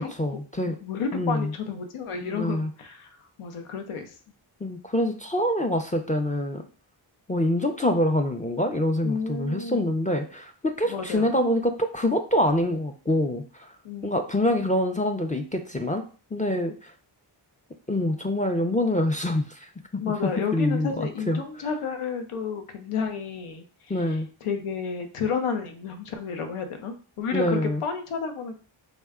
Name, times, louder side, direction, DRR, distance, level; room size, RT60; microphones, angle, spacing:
voice 1, 0.0-0.8 1.1-1.5 2.2-2.7 4.6-6.6 7.3-13.7 14.0-16.0 16.3-16.9 17.9-19.7 20.2-21.4 23.9-24.3 27.3-27.8, left 1 dB, 15° left, 5 dB, 0.4 m, -25 dB
voice 2, 0.6-4.1 9.0-9.9 10.9-11.3 13.8-14.2 20.0-23.6 23.9-28.5, left 6 dB, 85° left, 6 dB, 0.7 m, -31 dB
3.6 x 2.2 x 3.5 m, 0.38 s
cardioid pair, 45°, 50 cm